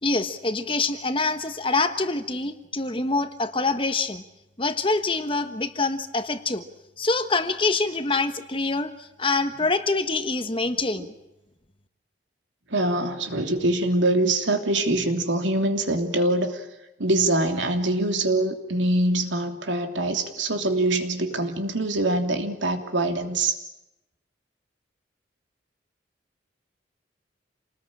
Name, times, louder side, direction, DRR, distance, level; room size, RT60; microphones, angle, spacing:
voice 1, 0.0-4.2 4.6-6.6 7.0-11.1, left 3 dB, 25° left, 9 dB, 1.4 m, -25 dB
voice 2, 12.7-16.7 17.0-23.6, right 2 dB, 80° right, 5 dB, 3.1 m, -24 dB
28.0 x 20.0 x 8.8 m, 0.93 s
head